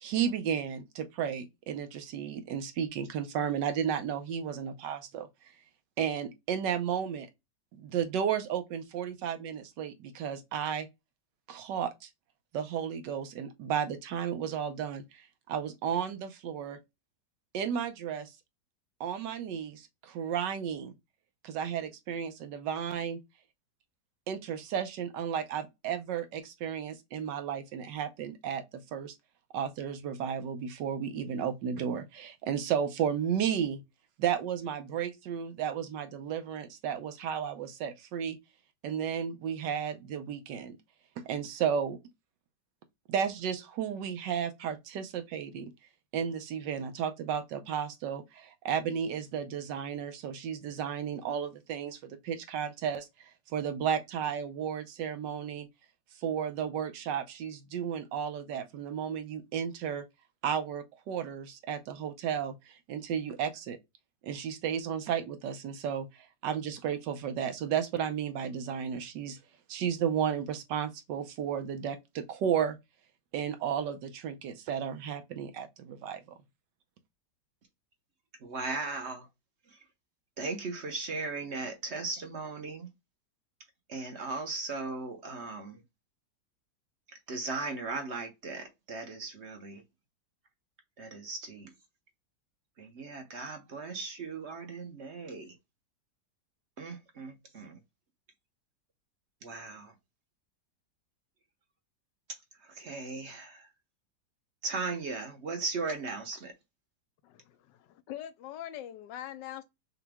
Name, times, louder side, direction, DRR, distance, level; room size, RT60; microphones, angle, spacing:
voice 1, 0.0-5.3 6.0-7.3 7.7-10.9 11.5-12.1 12.5-16.8 17.5-18.3 19.0-20.9 21.4-23.2 24.3-29.1 29.5-33.8 34.2-38.4 38.8-40.8 41.3-42.0 43.1-45.7 46.1-55.7 56.2-60.0 60.4-63.8 64.2-69.4 69.7-72.8 73.3-76.2, right 8 dB, 85° right, 1.4 m, -33 dB
voice 2, 78.4-79.3 80.4-82.9 83.9-85.8 87.3-89.8 91.0-91.7 92.8-95.5 96.8-97.8 99.4-99.9 102.8-103.7 104.6-106.5, right 3 dB, 50° right, 1.0 m, -37 dB
voice 3, 107.2-109.6, left 12 dB, 80° left, 1.3 m, -43 dB
5.8 x 2.2 x 3.4 m
omnidirectional pair, 1.9 m